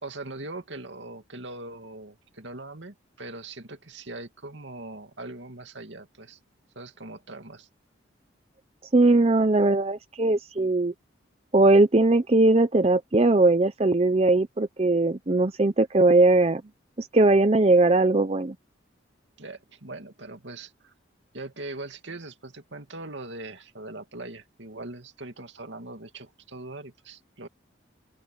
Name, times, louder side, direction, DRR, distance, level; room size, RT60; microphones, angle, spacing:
voice 1, 0.0-6.4 6.7-7.7 19.4-20.9 21.3-27.5, right 2 dB, 70° right, 2.5 m, -41 dB
voice 2, 8.9-10.9 11.5-16.6 17.0-18.5, right 2 dB, 30° right, 0.6 m, -20 dB
open air
head